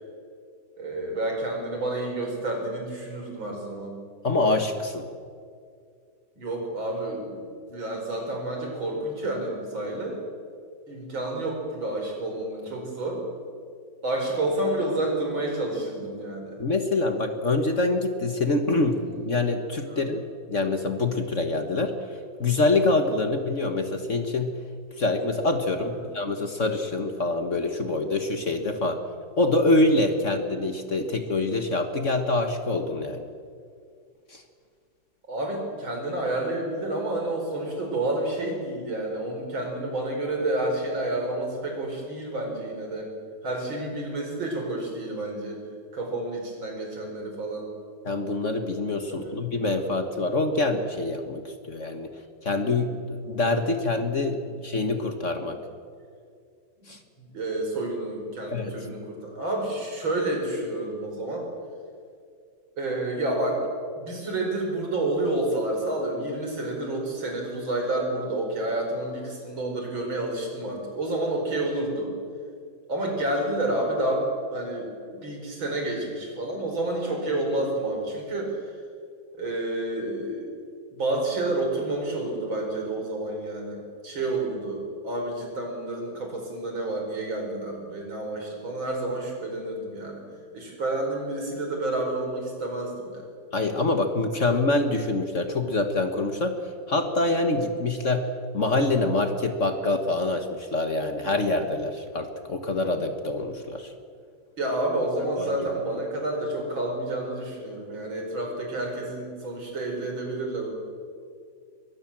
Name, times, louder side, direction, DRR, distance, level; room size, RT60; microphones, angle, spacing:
voice 1, 0.8-4.0 6.4-10.2 10.9-13.2 14.0-16.6 19.8-20.1 25.9-26.1 35.3-43.1 43.4-45.6 45.9-47.7 49.1-49.5 54.4-54.6 57.2-61.5 62.8-63.7 64.0-72.1 72.9-78.7 79.3-80.5 80.9-90.2 90.5-93.3 99.8-99.9 104.6-110.7, right 2 dB, 75° right, 2 dB, 5.5 m, -29 dB
voice 2, 4.2-5.0 16.6-22.0 22.4-24.5 25.0-29.0 29.4-33.2 34.3-34.4 48.0-52.1 52.4-55.6 56.9-57.0 58.5-58.7 93.5-96.6 96.9-98.3 98.5-103.9 105.4-105.5, left 2 dB, 40° left, 6 dB, 1.6 m, -25 dB
22.5 x 20.5 x 7.4 m, 2.2 s
omnidirectional pair, 2.2 m